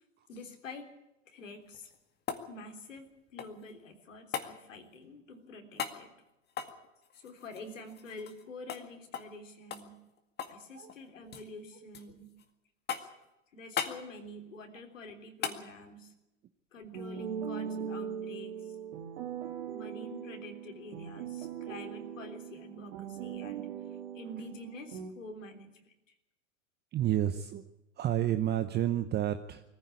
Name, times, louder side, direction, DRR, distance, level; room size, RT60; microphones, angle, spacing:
voice 1, 0.3-0.9 1.3-1.9 2.5-6.1 7.1-9.9 10.5-12.3 13.5-16.1 16.7-18.5 19.7-23.7 24.1-25.9 27.3-27.4, left 2 dB, 75° left, 5 dB, 3.6 m, -47 dB
sound 1, 1.7-3.7 4.3-4.5 5.8-6.0 6.5-8.4 8.7-8.8 9.1-9.4 9.7-10.6 10.9-11.5 11.9-12.5 12.9-13.3 13.8-14.0 15.4-15.6 18.0-18.1, left 8 dB, 25° left, 2.0 m, -38 dB
sound 2, 16.9-25.1, right 8 dB, 60° right, 2.8 m, -40 dB
voice 2, 26.9-27.6 28.0-29.6, right 12 dB, 25° right, 9 dB, 1.0 m, -30 dB
21.5 x 15.0 x 8.5 m, 0.95 s
hypercardioid pair, 105°, 38 cm